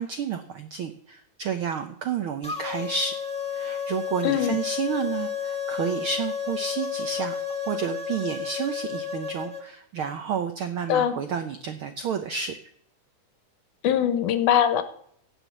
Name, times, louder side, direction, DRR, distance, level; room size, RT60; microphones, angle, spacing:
voice 1, 0.0-3.2 3.5-7.3 7.7-12.6, right 6 dB, 80° right, 7 dB, 1.2 m, -30 dB
sound 1, 2.4-9.6, left 7 dB, 5° left, 0.7 m, -31 dB
voice 2, 4.2-4.6 10.9-11.1 13.8-14.8, left 9 dB, 90° left, 11 dB, 2.5 m, -22 dB
16.0 x 5.5 x 8.4 m, 0.67 s
omnidirectional pair, 3.5 m